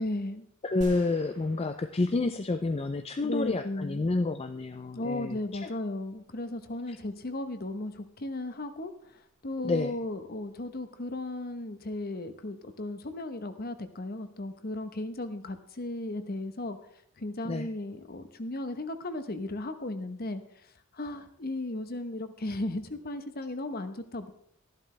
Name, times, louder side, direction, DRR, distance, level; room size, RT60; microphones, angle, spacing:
voice 1, 0.0-0.5 3.2-4.0 4.9-16.8 17.2-20.4 20.9-24.3, left 2 dB, 45° left, 10 dB, 0.9 m, -35 dB
voice 2, 0.6-5.7 6.9-7.0 9.6-9.9 17.4-17.7, left 3 dB, 30° left, 8 dB, 0.4 m, -29 dB
sound 1, 0.8-3.1, right 1 dB, 35° right, 1.8 m, -48 dB
13.0 x 11.5 x 3.3 m, 0.70 s
head